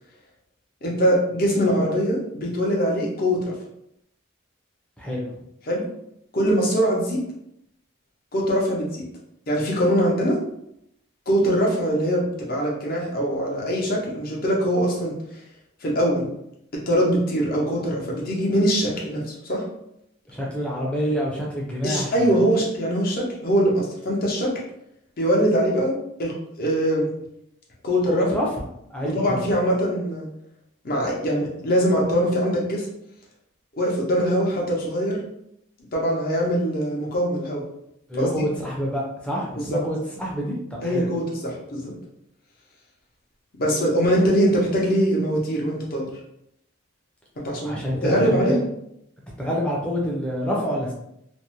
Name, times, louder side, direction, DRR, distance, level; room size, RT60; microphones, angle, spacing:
voice 1, 0.8-3.5 5.7-5.8 6.3-7.2 8.3-8.9 9.5-10.4 11.3-15.1 15.8-16.3 16.7-19.6 21.8-24.5 25.2-25.9 26.2-27.1 27.8-28.3 29.0-30.3 30.8-32.9 33.8-35.2 35.9-37.6 38.1-38.4 39.6-39.8 40.8-41.9 43.6-46.1 47.4-48.6, equal, 45° left, -3 dB, 0.7 m, -22 dB
voice 2, 5.0-5.3 20.3-22.3 28.1-28.5 28.9-29.5 38.1-41.1 47.6-48.6 49.4-50.9, equal, 5° left, -3 dB, 0.5 m, -27 dB
2.5 x 2.0 x 2.9 m, 0.78 s
head